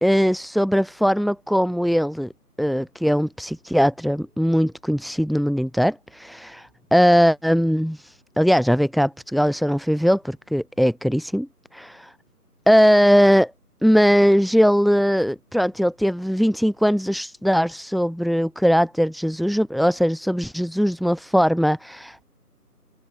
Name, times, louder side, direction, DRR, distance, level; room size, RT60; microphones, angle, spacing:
voice 1, 0.0-2.3 2.6-11.5 11.7-12.1 12.7-13.5 13.8-22.2, equal, ahead, 1.5 m, -20 dB
open air
figure-of-eight pair, 180°, 48 cm